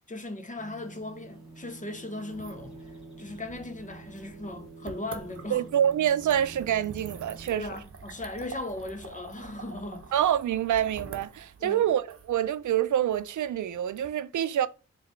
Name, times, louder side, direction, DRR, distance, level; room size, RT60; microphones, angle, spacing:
voice 1, 0.1-2.8 3.2-5.7 7.5-10.1 11.6-11.9, left 2 dB, 25° left, 0.7 m, -38 dB
sound 1, 0.6-7.5, right 3 dB, ahead, 1.6 m, -47 dB
sound 2, 2.2-14.1, right 4 dB, 50° right, 0.8 m, -47 dB
voice 2, 5.5-7.7 10.1-14.7, right 10 dB, 90° right, 0.4 m, -26 dB
5.0 x 3.1 x 3.1 m
wide cardioid pair, 175°, 29 cm